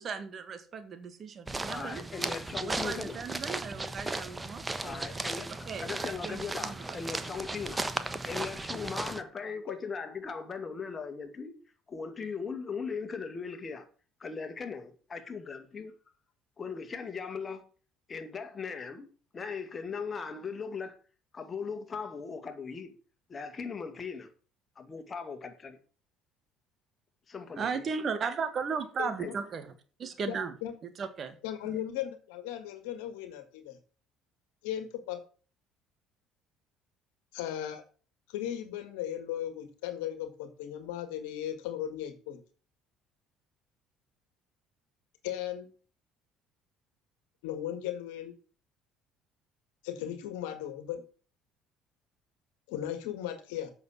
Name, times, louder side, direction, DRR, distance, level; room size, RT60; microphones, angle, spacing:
voice 1, 0.0-2.0 2.6-5.2 5.7-7.0 27.6-29.7 30.0-30.5 30.8-31.4, right 5 dB, 45° right, 1.8 m, -36 dB
sound 1, 1.5-9.2, right 2 dB, 20° right, 1.1 m, -36 dB
voice 2, 1.7-3.2 4.8-7.9 8.2-11.5 11.9-13.9 14.2-15.9 16.6-17.6 18.1-19.1 19.3-21.0 21.3-22.9 23.3-24.3 24.8-25.8 27.3-27.9 29.2-29.3, left 5 dB, 35° left, 2.3 m, -39 dB
voice 3, 29.0-29.3 30.3-30.7 31.4-33.8 34.6-35.2 37.3-37.8 38.3-42.4 45.2-45.7 47.4-48.3 49.8-51.0 52.7-53.7, left 11 dB, 80° left, 1.7 m, -37 dB
8.1 x 6.7 x 7.6 m
hypercardioid pair, 65°, 0 cm